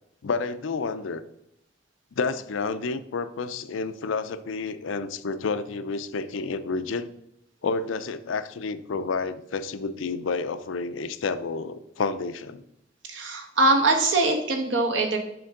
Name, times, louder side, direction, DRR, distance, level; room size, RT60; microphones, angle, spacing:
voice 1, 0.2-1.2 2.2-7.1 7.6-12.6, left 4 dB, 85° left, 12 dB, 0.5 m, -30 dB
voice 2, 13.1-15.2, right 2 dB, 70° right, 3 dB, 1.3 m, -22 dB
6.9 x 5.4 x 3.7 m, 0.79 s
head